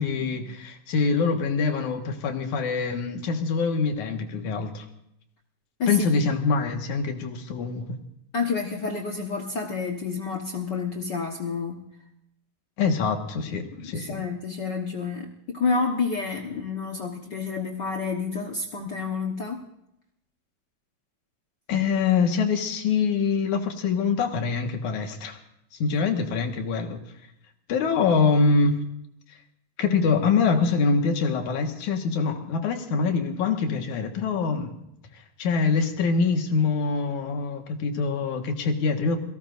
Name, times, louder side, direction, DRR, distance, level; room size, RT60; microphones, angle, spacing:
voice 1, 0.0-4.9 5.9-8.0 12.8-14.2 21.7-25.4 25.8-27.0 27.7-28.8 29.8-34.7 35.4-39.2, left 4 dB, 65° left, 4 dB, 2.9 m, -24 dB
voice 2, 8.3-11.9 13.8-19.7, left 4 dB, 80° left, 1 dB, 0.9 m, -29 dB
28.5 x 18.0 x 2.6 m, 0.79 s
omnidirectional pair, 4.0 m